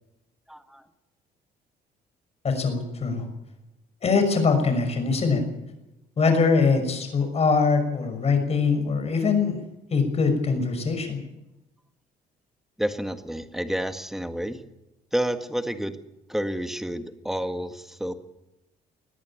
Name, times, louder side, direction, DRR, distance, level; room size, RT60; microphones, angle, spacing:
voice 1, 0.5-0.8 12.8-14.6 15.1-16.0 16.3-18.1, equal, ahead, 8 dB, 1.7 m, -29 dB
voice 2, 2.4-3.3 4.0-5.4 6.2-9.6 9.9-11.2, left 4 dB, 40° left, 6 dB, 6.1 m, -22 dB
21.0 x 14.0 x 9.1 m, 0.94 s
cardioid pair, 110°, 17 cm